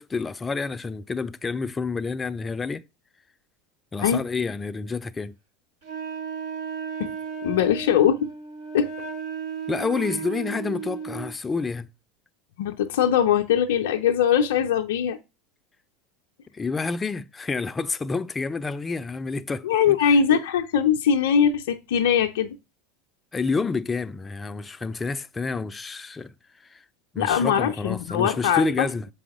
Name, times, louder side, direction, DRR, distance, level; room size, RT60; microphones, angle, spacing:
voice 1, 0.0-2.8 3.9-5.3 9.7-11.9 16.5-20.2 23.3-26.8 27.1-29.1, left 4 dB, 20° left, 0.4 m, -29 dB
Wind instrument woodwind instrument, 5.8-11.4, right 6 dB, 65° right, 1.8 m, -34 dB
voice 2, 7.4-8.3 8.7-8.9 12.6-15.2 19.6-22.6 27.2-28.9, left 8 dB, 70° left, 0.5 m, -21 dB
6.8 x 4.8 x 3.4 m
hypercardioid pair, 80°, 0 cm